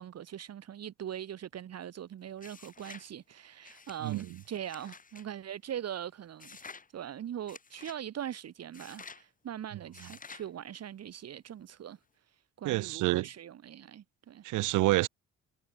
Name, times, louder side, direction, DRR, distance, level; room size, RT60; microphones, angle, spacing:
voice 1, 0.0-6.6 6.9-12.0 12.3-14.5, right 10 dB, 55° right, 1.5 m, -41 dB
sound 1, 2.4-3.1 3.6-5.3 6.4-6.9 7.5-8.0 8.7-9.2 9.9-10.5, left 5 dB, 25° left, 1.4 m, -50 dB
voice 2, 12.6-13.3 14.4-15.1, right 18 dB, 80° right, 0.5 m, -27 dB
cardioid pair, 90°, 30 cm